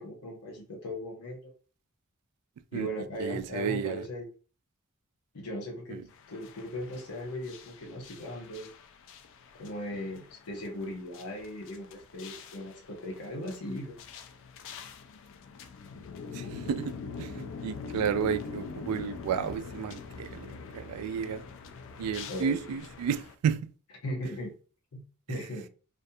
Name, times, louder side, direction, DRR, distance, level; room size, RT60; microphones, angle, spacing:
voice 1, 0.0-1.5 2.7-4.3 5.3-6.0 6.3-8.7 9.5-13.9 22.3-22.7 24.0-24.5 24.9-25.0 25.3-25.7, equal, 80° left, 0.7 m, -38 dB
voice 2, 3.2-4.0 5.9-6.0 16.3-20.5 20.7-21.4 22.0-23.7 25.3-25.4, right 7 dB, 85° right, 0.3 m, -32 dB
sound 1, 6.1-23.3, left 5 dB, 60° left, 0.3 m, -44 dB
2.4 x 2.1 x 2.6 m
head